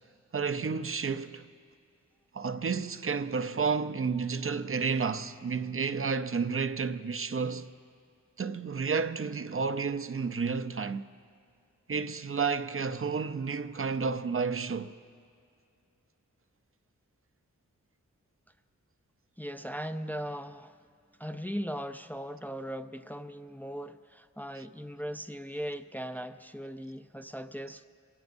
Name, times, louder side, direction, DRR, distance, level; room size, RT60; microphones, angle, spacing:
voice 1, 0.3-1.5 2.3-7.7 8.4-11.1 11.9-14.9 24.5-24.6, right 5 dB, 45° right, 0.6 m, -31 dB
voice 2, 19.4-20.8 21.2-27.8, equal, 5° left, 0.5 m, -38 dB
24.0 x 17.0 x 2.6 m
cardioid pair, 40°, 31 cm